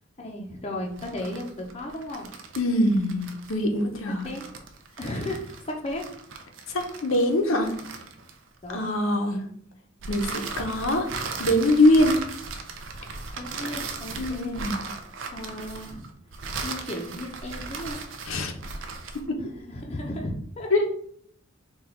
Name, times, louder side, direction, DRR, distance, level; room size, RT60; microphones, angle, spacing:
voice 1, 0.2-2.3 4.2-4.5 5.0-6.1 8.6-8.8 13.4-14.6 15.3-16.1 16.6-18.0 19.4-20.7, left 1 dB, 30° left, 1 dB, 0.6 m, -35 dB
sound 1, 0.9-8.7 10.0-19.3, right 4 dB, 65° right, 0.5 m, -37 dB
voice 2, 2.6-4.3 6.7-7.7 8.7-9.4 10.1-11.1 11.4-12.2 14.2-14.8 18.3-18.5 19.3-19.4 20.7-20.9, left 1 dB, 80° left, 4 dB, 0.7 m, -23 dB
3.9 x 2.3 x 4.3 m, 0.64 s
head